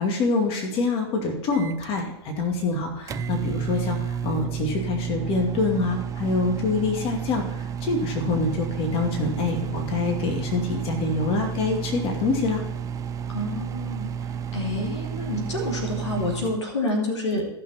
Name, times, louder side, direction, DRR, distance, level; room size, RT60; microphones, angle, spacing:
voice 1, 0.0-12.6, left 3 dB, 40° left, 1 dB, 2.3 m, -26 dB
Microwave oven, 1.5-16.6, right 7 dB, 25° right, 0.5 m, -31 dB
voice 2, 13.3-14.1 14.5-17.5, left 1 dB, 85° left, 2 dB, 2.7 m, -28 dB
15.0 x 6.1 x 4.3 m, 0.84 s
hypercardioid pair, 105°, 14 cm